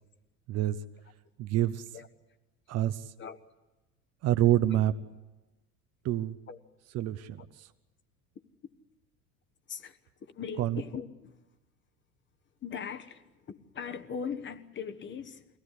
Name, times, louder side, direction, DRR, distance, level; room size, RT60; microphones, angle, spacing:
voice 1, 1.4-1.9 2.7-3.0 4.2-4.9 6.0-6.4 6.9-7.7 10.6-10.8, right 13 dB, 35° right, 11 dB, 0.8 m, -27 dB
voice 2, 9.7-11.4 12.6-15.5, left 7 dB, 25° left, 10 dB, 1.2 m, -40 dB
23.5 x 16.5 x 10.0 m, 1.1 s
figure-of-eight pair, 75°, 45 cm